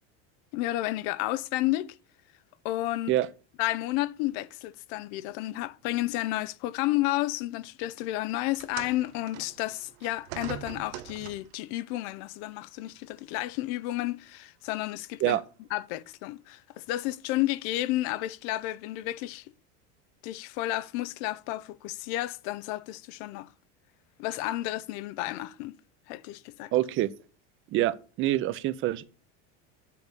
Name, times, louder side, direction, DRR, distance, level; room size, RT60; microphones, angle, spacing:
voice 1, 0.5-2.0 2.6-3.1 3.6-15.4 15.7-19.5 20.2-23.5 24.2-25.8 26.1-26.7, left 16 dB, 65° left, 0.6 m, -31 dB
sound 1, 8.6-11.6 12.6-12.8 13.7-13.8, right 15 dB, 80° right, 0.6 m, -42 dB
voice 2, 26.7-27.1 27.7-29.0, right 14 dB, 35° right, 0.6 m, -26 dB
8.5 x 3.5 x 6.6 m
supercardioid pair, 145°, 34 cm